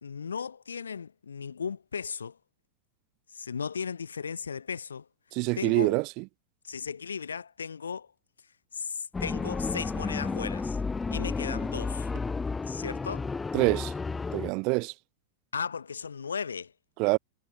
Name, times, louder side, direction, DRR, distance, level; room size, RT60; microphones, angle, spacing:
voice 1, 0.0-2.4 3.3-5.1 5.6-6.0 6.6-8.1 8.7-10.8 11.1-12.1 12.7-13.3 15.5-16.7, left 6 dB, 70° left, 2.0 m, -36 dB
voice 2, 5.3-6.0 13.5-13.9 14.3-14.9 17.0-17.2, right 29 dB, 45° right, 0.6 m, -25 dB
sound 1, 9.1-14.5, left 4 dB, 10° left, 0.5 m, -32 dB
figure-of-eight pair, 90°, 0 cm